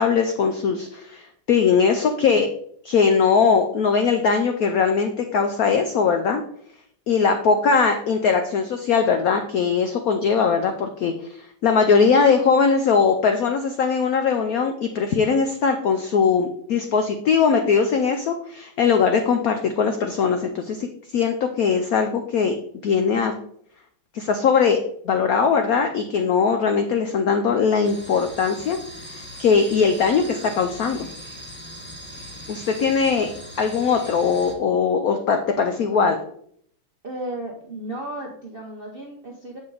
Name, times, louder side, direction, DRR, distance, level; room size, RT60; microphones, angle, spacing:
voice 1, 0.0-2.5 2.8-6.4 7.1-20.9 21.1-22.5 22.8-23.3 24.1-24.8 25.0-28.8 29.1-31.1 32.5-33.3 33.6-36.2, left 5 dB, 80° left, 6 dB, 0.8 m, -20 dB
sound 1, 27.8-34.5, equal, 10° left, 0.5 m, -40 dB
voice 2, 37.0-39.6, right 1 dB, 60° right, -1 dB, 0.6 m, -34 dB
7.0 x 5.2 x 3.8 m, 0.64 s
omnidirectional pair, 2.2 m